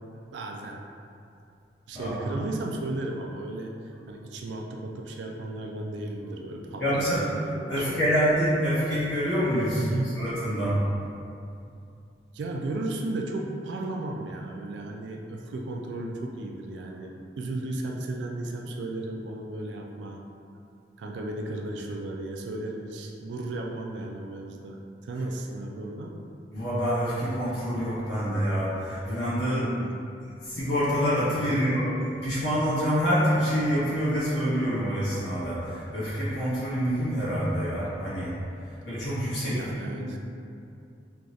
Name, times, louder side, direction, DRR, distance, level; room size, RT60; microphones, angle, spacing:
voice 1, 0.2-0.8 1.9-7.9 9.8-10.2 12.3-20.2 21.0-26.2 29.4-30.0 31.5-31.9 39.5-40.2, right 2 dB, 80° right, 1 dB, 0.3 m, -35 dB
voice 2, 6.8-7.2 7.7-10.8 26.5-29.6 30.4-31.9 32.2-38.3 38.8-39.6, equal, 90° left, -10 dB, 1.4 m, -26 dB
4.6 x 2.4 x 2.6 m, 2.6 s
head